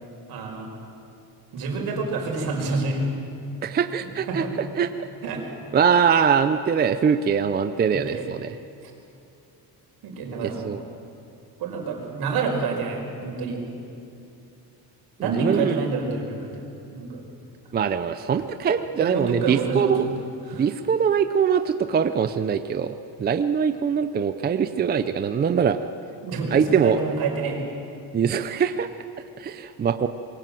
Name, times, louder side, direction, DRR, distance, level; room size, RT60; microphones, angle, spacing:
voice 1, 0.3-0.7 1.5-3.0 4.0-4.5 5.2-5.4 5.9-6.0 7.9-8.3 8.8-8.9 10.0-10.7 11.6-13.6 15.2-16.6 16.9-17.2 19.0-20.0 20.5-20.7 26.2-27.6, right 4 dB, 65° right, 2 dB, 5.2 m, -28 dB
voice 2, 3.6-4.4 4.8-4.9 5.7-8.5 10.4-10.8 15.2-15.8 17.7-20.0 20.5-25.8 26.5-27.0 28.1-28.9 29.4-30.1, right 7 dB, 25° right, 10 dB, 0.5 m, -22 dB
26.0 x 22.0 x 7.7 m, 2.7 s
cardioid pair, 160°, 40 cm